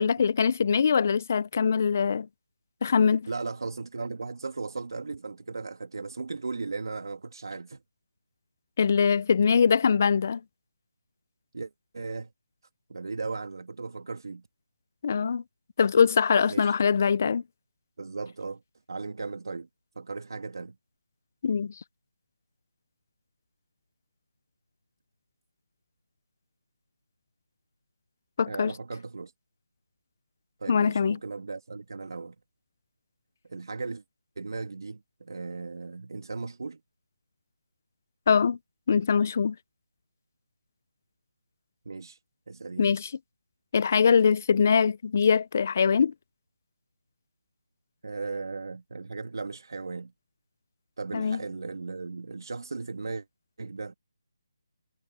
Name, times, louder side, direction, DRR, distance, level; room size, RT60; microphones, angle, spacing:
voice 1, 0.0-2.3 2.8-3.3 8.8-10.4 15.0-15.4 15.8-17.4 21.4-21.7 28.4-28.7 30.7-31.2 38.3-38.6 38.9-39.6 42.8-43.1 43.7-46.1 51.1-51.4, left 6 dB, 30° left, 0.3 m, -23 dB
voice 2, 3.3-7.8 11.5-12.3 12.9-14.5 16.5-16.7 18.0-18.6 18.9-19.7 20.0-20.8 28.5-29.3 30.6-32.4 33.5-34.0 34.4-36.8 41.9-42.2 42.5-42.9 48.0-50.1 51.0-53.3 53.6-53.9, right 4 dB, 65° right, 1.9 m, -36 dB
hypercardioid pair, 175°, 2 cm